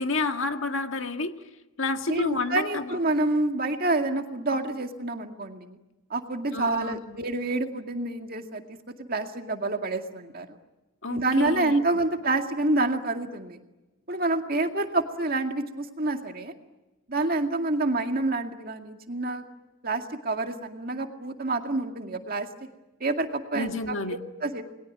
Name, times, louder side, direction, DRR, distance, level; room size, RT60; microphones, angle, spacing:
voice 1, 0.0-1.3 1.8-3.0 6.5-7.2 11.0-11.9 23.5-24.2, left 3 dB, 60° left, 6 dB, 1.9 m, -30 dB
voice 2, 2.1-5.8 6.1-8.8 9.1-10.5 11.1-13.6 14.1-16.5 17.1-19.4 19.8-22.5 23.0-24.6, right 2 dB, 40° right, 5 dB, 2.2 m, -28 dB
29.5 x 22.0 x 9.3 m, 1.1 s
head